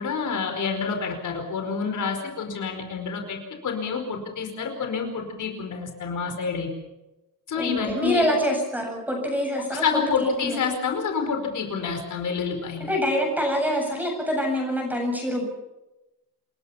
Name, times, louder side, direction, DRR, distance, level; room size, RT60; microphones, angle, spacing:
voice 1, 0.0-6.7 7.5-8.3 9.7-12.9, left 5 dB, 60° left, 5 dB, 5.0 m, -28 dB
voice 2, 7.6-10.6 12.8-15.4, equal, 5° right, 1 dB, 7.9 m, -25 dB
29.0 x 21.5 x 5.9 m, 0.99 s
wide cardioid pair, 175°, 34 cm